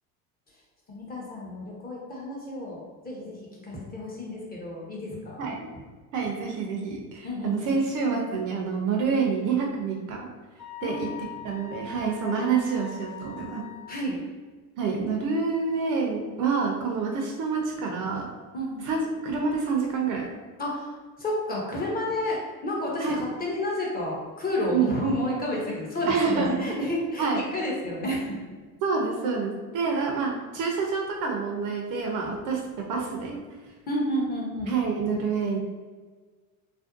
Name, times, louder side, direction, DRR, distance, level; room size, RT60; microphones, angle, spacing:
voice 1, 0.9-5.5 7.2-7.8 10.8-11.1 13.9-14.2 18.5-18.9 20.6-20.9 21.2-22.4 22.6-28.4 29.8-30.0 33.9-34.7, left 1 dB, 20° left, -3 dB, 0.6 m, -30 dB
voice 2, 6.1-10.3 10.8-11.1 11.4-13.6 14.8-18.3 18.8-20.3 23.0-23.2 24.7-24.9 26.1-26.6 27.2-27.4 28.8-33.4 34.7-35.6, right 5 dB, 45° right, 1 dB, 0.5 m, -27 dB
Wind instrument woodwind instrument, 10.6-14.1, left 5 dB, 80° left, 0.9 m, -41 dB
2.5 x 2.1 x 2.4 m, 1.4 s
hypercardioid pair, 90°, 43 cm